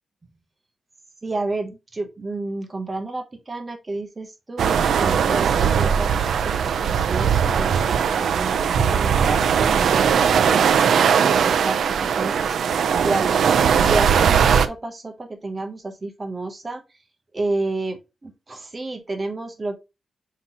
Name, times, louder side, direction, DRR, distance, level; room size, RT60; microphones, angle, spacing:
voice 1, 1.2-16.8 17.3-19.8, right 2 dB, 25° right, 5 dB, 0.6 m, -31 dB
sound 1, 4.6-14.7, right 7 dB, 75° right, 0.3 m, -19 dB
5.3 x 2.8 x 2.8 m, 0.25 s
wide cardioid pair, 150°, 0 cm